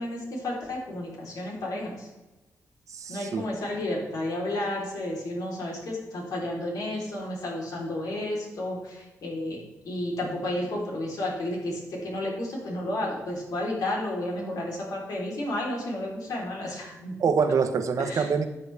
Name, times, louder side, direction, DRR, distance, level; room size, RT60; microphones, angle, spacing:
voice 1, 0.0-2.1 3.1-17.1 18.0-18.3, left 1 dB, 85° left, -2 dB, 3.7 m, -32 dB
voice 2, 2.9-3.4 17.2-18.4, right 5 dB, 60° right, 8 dB, 1.0 m, -25 dB
13.0 x 8.0 x 3.4 m, 1.1 s
wide cardioid pair, 120°, 6 cm